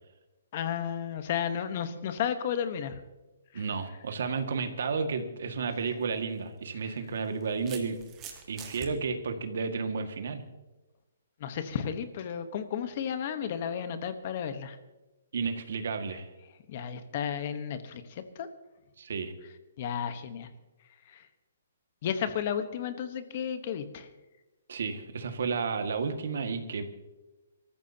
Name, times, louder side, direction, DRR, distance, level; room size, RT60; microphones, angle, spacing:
voice 1, 0.5-3.0 3.5-3.6 6.8-6.9 11.4-14.8 16.7-18.5 19.8-20.5 21.1-21.3 22.0-24.1, left 8 dB, 35° left, 10 dB, 1.1 m, -33 dB
voice 2, 3.5-8.0 8.5-10.4 15.3-16.3 19.0-19.3 24.7-26.8, right 5 dB, 60° right, 6 dB, 1.9 m, -32 dB
sound 1, 5.7-5.9 7.0-8.9, right 8 dB, 15° right, 1.4 m, -45 dB
25.0 x 14.0 x 2.9 m, 1.1 s
hypercardioid pair, 175°, 0 cm